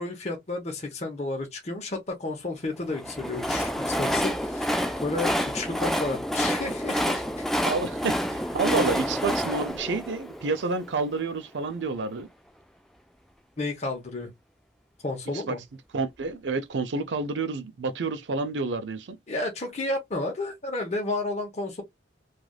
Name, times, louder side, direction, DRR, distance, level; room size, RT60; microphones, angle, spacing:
voice 1, 0.0-7.5 13.6-14.3 15.0-15.6 19.3-21.8, left 2 dB, 35° left, 0.8 m, -32 dB
Train, 2.9-11.0, equal, ahead, 0.3 m, -28 dB
voice 2, 7.6-12.3 15.5-15.6 15.9-19.2, right 4 dB, 75° right, 0.5 m, -29 dB
3.2 x 2.4 x 2.3 m
head